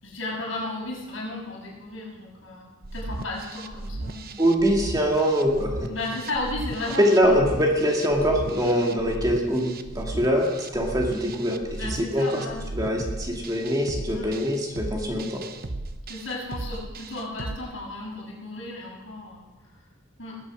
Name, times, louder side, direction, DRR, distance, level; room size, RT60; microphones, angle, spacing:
voice 1, 0.0-4.4 5.9-7.4 8.6-8.8 11.8-12.6 14.1-14.4 16.1-19.4 20.2-20.4, left 2 dB, 75° left, -4 dB, 6.9 m, -34 dB
sound 1, 2.8-17.6, right 2 dB, 50° right, 0.9 m, -36 dB
voice 2, 4.4-5.9 7.0-12.3 12.7-15.4, equal, 20° right, 0 dB, 2.3 m, -23 dB
20.5 x 8.5 x 6.2 m, 1.2 s
head